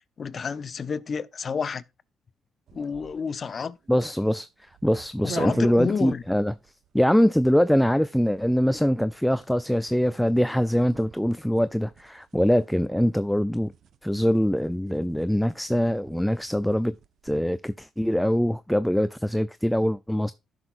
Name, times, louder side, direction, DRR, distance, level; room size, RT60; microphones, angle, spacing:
voice 1, 0.2-1.8 2.7-3.8 5.2-6.2, left 6 dB, 45° left, 0.8 m, -30 dB
sound 1, 2.7-17.6, right 9 dB, 65° right, 0.7 m, -48 dB
voice 2, 3.9-4.5 4.8-6.5 6.9-13.7 14.0-16.9 17.2-20.3, equal, 5° left, 0.4 m, -23 dB
15.0 x 6.3 x 2.5 m
cardioid pair, 90°, 0 cm